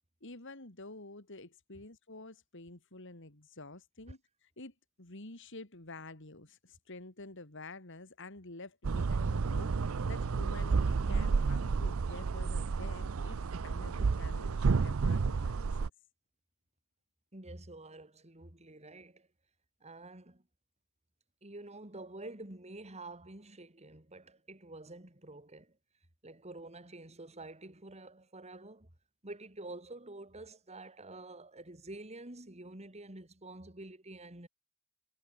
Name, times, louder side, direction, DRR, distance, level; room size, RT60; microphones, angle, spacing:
voice 1, 0.2-15.7, left 2 dB, 60° left, 3.3 m, -49 dB
sound 1, 8.8-15.9, right 4 dB, 75° right, 0.5 m, -31 dB
voice 2, 17.3-19.3 19.8-20.4 21.4-25.8 26.2-28.9 29.2-34.5, right 2 dB, 30° right, 3.0 m, -48 dB
head